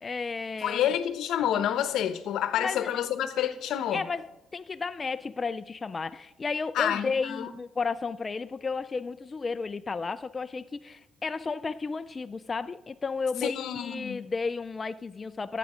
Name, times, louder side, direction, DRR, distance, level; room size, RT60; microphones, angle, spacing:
voice 1, 0.0-0.8 2.6-2.9 3.9-15.6, left 4 dB, 30° left, 0.4 m, -33 dB
voice 2, 0.6-4.1 6.7-7.5 13.4-14.2, left 10 dB, 80° left, 0.9 m, -28 dB
14.0 x 8.2 x 5.0 m
cardioid pair, 90°, 0 cm